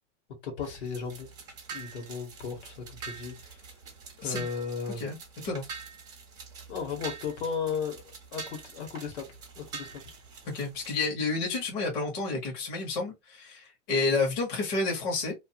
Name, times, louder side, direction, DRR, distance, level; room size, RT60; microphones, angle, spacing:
voice 1, 0.4-1.3 1.7-3.6 4.2-5.0 6.7-9.3 9.6-10.0, left 6 dB, 60° left, 1.4 m, -35 dB
sound 1, 0.6-11.0, right 5 dB, 10° right, 0.5 m, -45 dB
voice 2, 10.4-15.3, left 3 dB, 35° left, 1.2 m, -30 dB
2.6 x 2.5 x 2.8 m
supercardioid pair, 165°, 38 cm